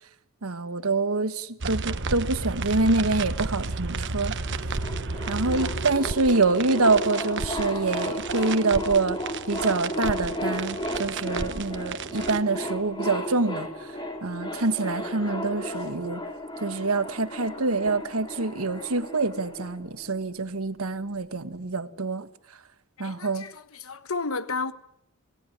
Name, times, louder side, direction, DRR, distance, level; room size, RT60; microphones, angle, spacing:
voice 1, 0.4-4.3 5.3-9.2 9.5-13.7 14.2-16.2 16.6-22.3 23.0-23.5, right 3 dB, 90° right, 1.4 m, -26 dB
sound 1, 1.6-12.4, right 4 dB, 55° right, 1.1 m, -32 dB
sound 2, 4.4-20.3, equal, 20° left, 3.3 m, -34 dB
voice 2, 23.0-24.7, left 4 dB, 75° left, 1.3 m, -32 dB
27.5 x 18.0 x 9.9 m
head